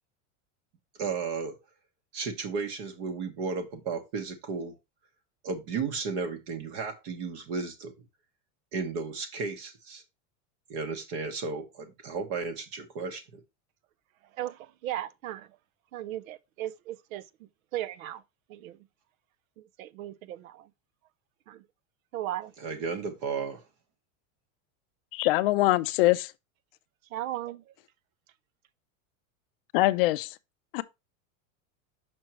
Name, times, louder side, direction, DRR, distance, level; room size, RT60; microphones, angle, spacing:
voice 1, 1.0-1.5 2.1-4.7 5.4-7.9 8.7-10.0 10.7-13.4 22.6-23.6, right 5 dB, 35° right, 1.1 m, -34 dB
voice 2, 14.4-15.5 15.9-17.3 17.7-18.2 18.5-18.8 19.6-20.7 21.5-21.6 22.1-22.5 27.1-27.7, right 13 dB, 75° right, 0.7 m, -36 dB
voice 3, 25.1-26.3 29.7-30.3 30.7-30.8, left 18 dB, 45° left, 0.5 m, -23 dB
6.2 x 6.1 x 2.9 m
supercardioid pair, 175°, 42 cm